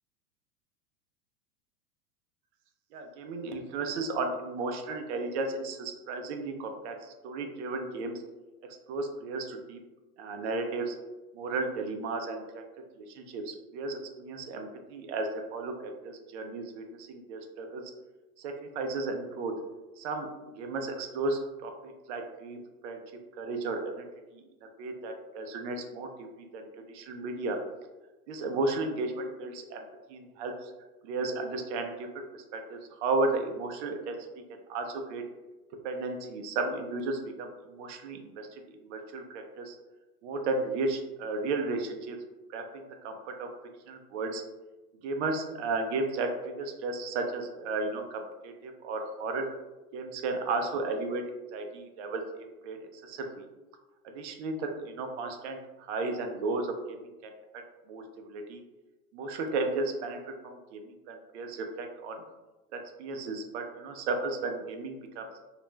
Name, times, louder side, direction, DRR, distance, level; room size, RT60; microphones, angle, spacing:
voice 1, 2.9-8.2 8.7-9.8 10.2-11.0 11.3-12.6 13.0-17.8 18.4-19.5 20.0-20.3 20.6-22.6 22.8-23.0 23.4-24.1 24.3-24.4 24.8-27.6 28.3-30.7 31.0-34.2 34.5-35.2 35.8-39.8 40.2-42.2 42.5-43.5 43.9-44.4 45.0-49.5 49.9-51.2 51.5-53.5 54.0-57.6 57.9-58.6 59.1-60.2 60.4-62.2 62.7-65.3, right 3 dB, 50° right, 5 dB, 0.5 m, -34 dB
2.4 x 2.0 x 3.1 m, 1.1 s
hypercardioid pair, 120°, 44 cm